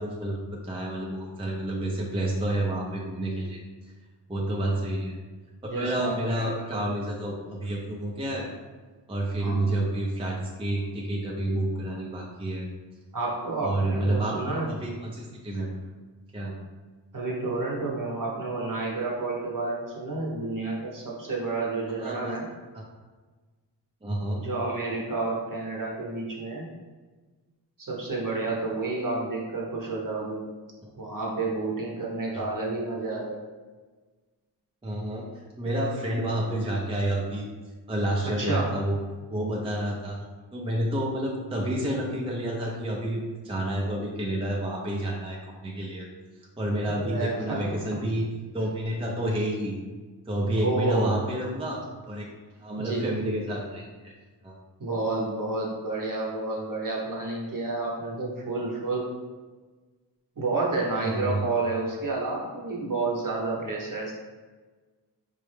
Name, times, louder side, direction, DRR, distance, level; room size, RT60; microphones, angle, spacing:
voice 1, 0.0-3.6 4.3-5.2 5.7-8.5 9.1-12.7 13.6-15.7 16.3-16.5 22.0-22.4 22.7-22.8 24.0-24.4 30.8-30.9 32.3-32.5 34.8-37.5 37.9-39.0 39.3-40.2 40.5-46.1 46.6-48.3 48.5-49.8 50.3-52.3 52.6-54.1 54.4-54.6 61.0-61.5, right 1 dB, 15° right, -2 dB, 0.5 m, -29 dB
voice 2, 5.7-6.8 9.4-9.7 13.1-14.7 17.1-22.4 24.4-26.7 27.8-30.4 31.0-33.4 35.6-35.7 38.2-38.8 46.9-47.8 50.6-51.2 52.8-53.1 54.8-59.1 60.4-64.1, right 3 dB, 50° right, -3 dB, 0.9 m, -30 dB
4.5 x 2.1 x 3.2 m, 1.3 s
wide cardioid pair, 80°, 43 cm